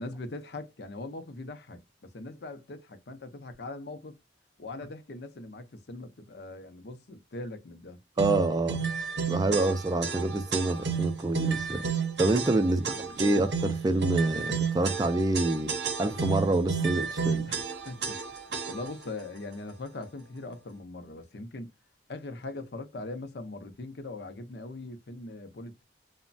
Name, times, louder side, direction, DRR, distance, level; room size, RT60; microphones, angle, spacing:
voice 1, 0.0-4.2 4.6-8.0 12.7-13.2 17.4-21.7 22.1-25.8, left 2 dB, 60° left, 0.5 m, -41 dB
voice 2, 8.2-8.8 9.3-11.8 12.2-17.5, right 2 dB, 20° right, 0.3 m, -27 dB
sound 1, 8.2-19.0, right 6 dB, 65° right, 0.7 m, -32 dB
3.0 x 2.1 x 2.5 m
head